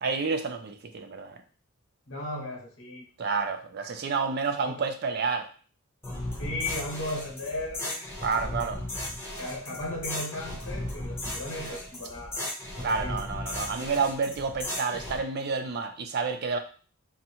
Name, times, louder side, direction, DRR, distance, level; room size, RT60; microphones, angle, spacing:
voice 1, 0.0-1.4 3.2-5.5 8.2-8.8 11.7-11.8 12.8-16.6, right 4 dB, 50° right, 7 dB, 0.4 m, -29 dB
voice 2, 2.1-3.1 4.6-4.8 6.4-8.1 9.4-13.2, left 1 dB, 65° left, -1 dB, 1.2 m, -36 dB
sound 1, 6.0-15.2, left 1 dB, 10° left, 0.8 m, -36 dB
3.9 x 2.1 x 2.9 m, 0.39 s
head